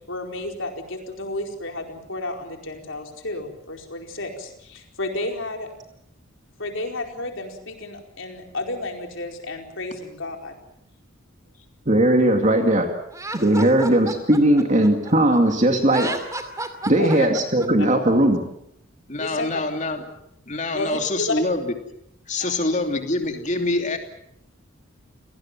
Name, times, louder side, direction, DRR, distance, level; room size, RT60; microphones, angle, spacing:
voice 1, 0.1-5.7 6.6-10.5 16.8-17.3 19.2-19.6 20.7-21.4 22.4-22.6, left 2 dB, 65° left, 3 dB, 4.6 m, -31 dB
voice 2, 11.9-12.9 13.3-16.1 16.9-18.4, right 1 dB, 35° right, 4 dB, 2.3 m, -18 dB
Laughter, 13.1-15.4 15.8-17.7, right 2 dB, 15° right, 2.5 m, -32 dB
voice 3, 19.1-20.0 20.5-21.7 22.3-24.0, left 2 dB, 35° left, 5 dB, 3.0 m, -25 dB
29.5 x 19.0 x 7.4 m, 0.77 s
head